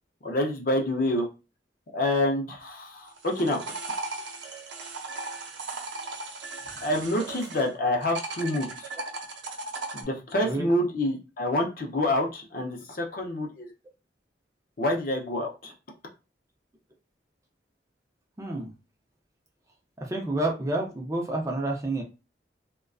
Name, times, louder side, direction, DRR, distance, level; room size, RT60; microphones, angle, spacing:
voice 1, 0.2-1.3 1.9-3.6 6.8-8.9 9.9-13.7 14.8-15.7, left 1 dB, 50° left, 1 dB, 0.5 m, -27 dB
sound 1, 3.1-7.7 8.0-10.0, right 3 dB, 80° right, 0.5 m, -37 dB
voice 2, 10.4-10.7 18.4-18.7 20.0-22.0, right 2 dB, 15° right, 0 dB, 0.4 m, -29 dB
2.4 x 2.2 x 2.3 m, 0.29 s
head